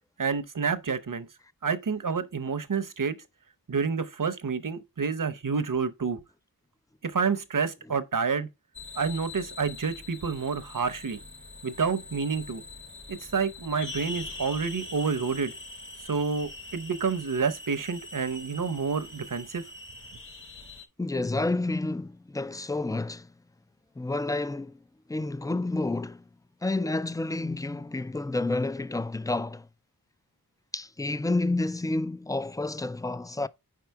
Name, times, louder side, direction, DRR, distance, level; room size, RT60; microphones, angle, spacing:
voice 1, 0.2-1.3 1.6-3.2 3.7-6.2 7.0-8.5 8.9-11.2 11.6-12.6 13.1-15.5 16.1-19.6, right 5 dB, 60° right, 0.8 m, -29 dB
sound 1, 8.7-20.8, left 2 dB, 35° left, 1.3 m, -43 dB
voice 2, 21.0-23.3 24.0-24.8 25.1-26.2 26.6-29.7 30.7-33.5, left 2 dB, 10° left, 0.3 m, -29 dB
4.9 x 4.6 x 4.6 m
wide cardioid pair, 45°, 37 cm